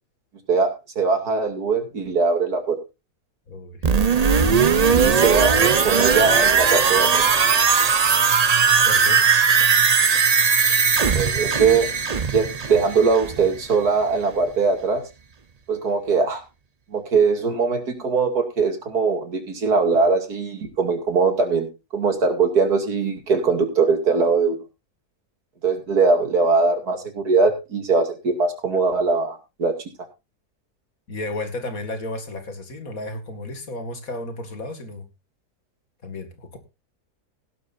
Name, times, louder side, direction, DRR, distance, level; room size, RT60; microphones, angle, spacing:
voice 1, 0.5-2.8 4.9-7.2 11.1-11.9 12.3-15.0 15.7-16.4 16.9-21.7 21.9-24.6 25.6-29.8, right 4 dB, 75° right, 5 dB, 3.0 m, -21 dB
voice 2, 3.5-3.9 8.8-9.3 31.1-35.0 36.0-36.6, left 2 dB, 60° left, 7 dB, 2.5 m, -33 dB
sound 1, 3.8-13.6 13.9-14.0, right 5 dB, 45° right, 0.5 m, -18 dB
17.0 x 11.5 x 2.6 m, 0.26 s
omnidirectional pair, 1.7 m